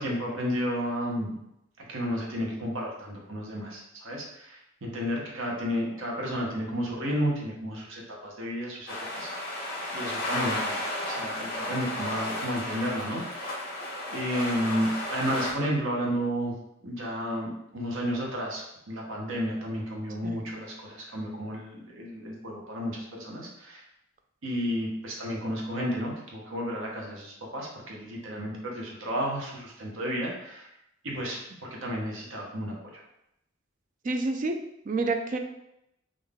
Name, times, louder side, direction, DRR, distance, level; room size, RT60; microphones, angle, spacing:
voice 1, 0.0-1.4 1.9-9.6 9.9-10.8 11.0-13.6 14.1-16.5 16.8-23.8 24.4-30.7 31.0-33.0, equal, 75° right, -2 dB, 0.9 m, -32 dB
sound 1, 8.9-15.5, left 1 dB, 45° left, 1.3 m, -33 dB
voice 2, 34.0-34.6 34.9-35.4, right 3 dB, 40° right, 5 dB, 0.4 m, -28 dB
3.8 x 2.6 x 3.5 m, 0.82 s
head